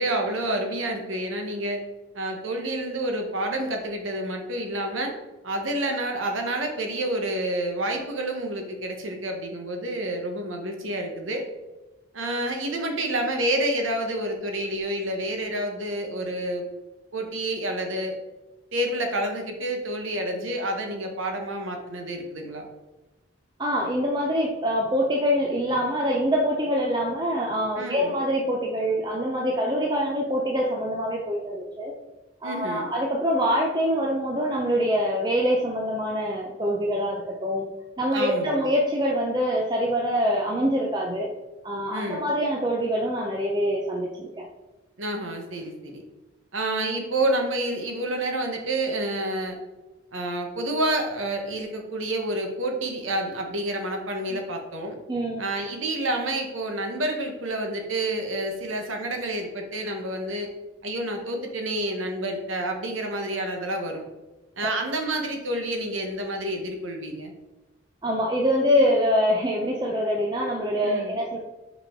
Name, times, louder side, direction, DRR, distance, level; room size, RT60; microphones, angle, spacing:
voice 1, 0.0-1.8 2.1-5.1 5.4-11.5 12.1-16.7 17.1-18.2 18.7-22.7 27.8-28.2 32.4-32.9 38.1-38.7 41.9-42.3 45.0-46.0 46.5-49.6 50.1-55.0 55.4-60.5 60.8-64.0 64.6-67.3 70.8-71.2, right 1 dB, 85° right, 3 dB, 1.2 m, -29 dB
voice 2, 23.6-31.9 32.4-37.7 38.0-41.3 41.6-44.5 54.3-54.4 55.1-55.4 68.0-71.4, equal, 20° right, -1 dB, 0.6 m, -25 dB
5.6 x 4.9 x 3.7 m, 1.1 s
head